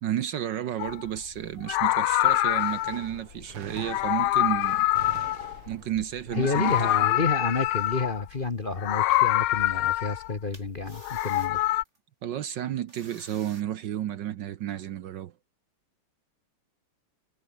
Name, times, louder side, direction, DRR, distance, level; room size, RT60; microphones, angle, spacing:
voice 1, 0.0-4.8 5.7-6.9 12.2-15.3, right 11 dB, 65° right, 1.3 m, -32 dB
Meow, 0.8-1.0 1.6-3.1 3.8-6.0 6.3-8.2 8.8-10.3 10.9-11.8, left 16 dB, 75° left, 1.5 m, -25 dB
Gunshot gunfire, 2.6-6.1 6.5-7.6, right 8 dB, 90° right, 2.8 m, -45 dB
voice 2, 6.3-11.6, left 3 dB, 30° left, 1.2 m, -30 dB
sound 1, 8.9-9.1 9.6-9.7 10.5-12.0 12.9-13.6, right 2 dB, 30° right, 6.3 m, -51 dB
omnidirectional pair, 2.4 m